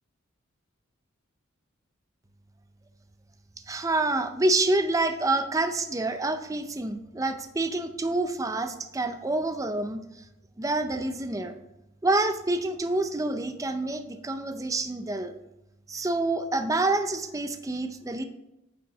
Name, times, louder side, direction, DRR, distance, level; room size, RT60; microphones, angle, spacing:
voice 1, 3.7-10.0 10.6-11.6 12.0-15.3 15.9-18.2, right 2 dB, 15° right, 9 dB, 0.5 m, -27 dB
9.4 x 4.4 x 4.6 m, 0.90 s
head